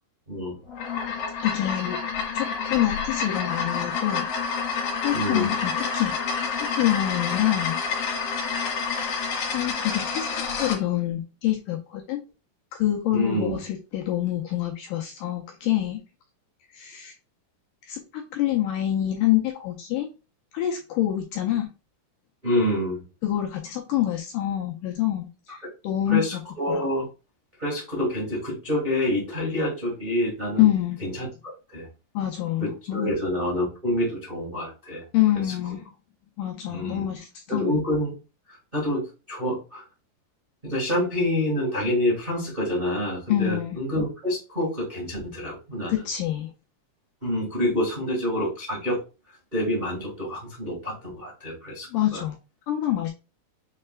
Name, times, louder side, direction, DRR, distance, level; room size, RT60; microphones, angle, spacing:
voice 1, 0.3-0.6 5.1-5.5 13.1-13.5 22.4-23.0 26.1-27.1 27.6-30.7 31.0-31.9 32.6-35.0 35.4-35.5 36.7-37.1 37.5-38.1 38.5-39.8 40.6-45.9 47.2-49.0 49.5-52.2, left 1 dB, 90° right, -3 dB, 0.4 m, -27 dB
sound 1, 0.7-10.8, left 5 dB, 55° left, 2.8 m, -28 dB
voice 2, 1.4-2.0 2.3-4.3 5.0-6.1 6.8-7.8 9.5-12.2 12.7-16.0 16.7-17.1 17.9-20.1 20.5-21.7 23.2-26.2 26.7-26.9 30.6-31.0 32.2-33.1 35.1-35.9 36.4-37.8 43.3-43.8 45.9-46.5 51.9-52.4 52.7-53.1, left 13 dB, 80° left, 0 dB, 2.0 m, -26 dB
6.5 x 3.2 x 2.3 m, 0.30 s
omnidirectional pair, 4.4 m